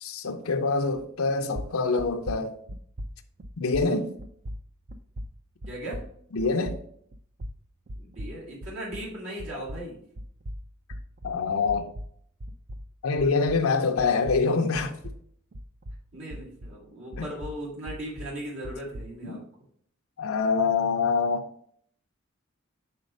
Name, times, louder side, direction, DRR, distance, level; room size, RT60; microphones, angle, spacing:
voice 1, 0.0-2.5 3.6-4.1 6.3-6.7 9.5-9.6 11.2-11.9 13.0-15.0 17.2-17.3 19.2-19.4 20.2-21.4, left 4 dB, 80° left, 0.6 m, -25 dB
sound 1, 0.9-1.3 1.5-9.1 9.4-13.7 14.0-16.8 17.1-19.2, equal, 40° right, 0.5 m, -40 dB
voice 2, 3.8-4.2 5.7-6.1 8.0-10.0 16.1-19.4, right 1 dB, 70° right, 2.0 m, -38 dB
5.2 x 4.1 x 5.2 m
head